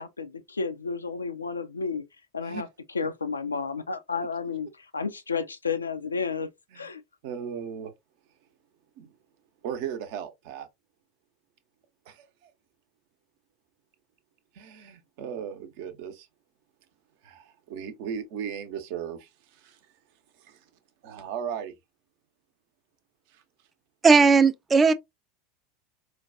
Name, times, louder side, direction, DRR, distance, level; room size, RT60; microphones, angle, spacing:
voice 1, 0.0-2.0 2.3-2.7 2.9-6.5 6.8-7.0, left 5 dB, 85° left, 0.4 m, -31 dB
voice 2, 7.2-7.9 9.0-9.1 9.6-10.7 12.1-12.5 14.5-16.3 17.2-19.8 20.4-20.6 21.0-21.7 23.3-23.4, right 8 dB, 60° right, 0.6 m, -37 dB
voice 3, 24.0-24.9, right 4 dB, 20° right, 0.4 m, -17 dB
4.4 x 2.2 x 2.5 m
figure-of-eight pair, 80°, 0 cm